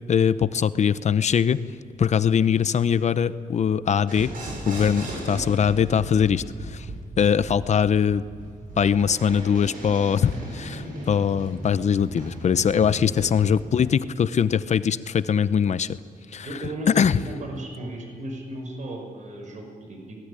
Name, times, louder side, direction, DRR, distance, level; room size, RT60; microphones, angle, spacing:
voice 1, 0.1-1.6 2.0-4.3 4.7-6.9 7.2-8.2 8.8-16.0 16.3-16.5 16.9-17.2, left 7 dB, 55° left, 15 dB, 0.8 m, -22 dB
sound 1, 4.1-13.9, right 1 dB, 75° right, 7.8 m, -37 dB
voice 2, 16.4-20.2, right 1 dB, 55° right, 3 dB, 5.3 m, -35 dB
24.0 x 19.5 x 9.9 m, 2.3 s
wide cardioid pair, 140°, 15 cm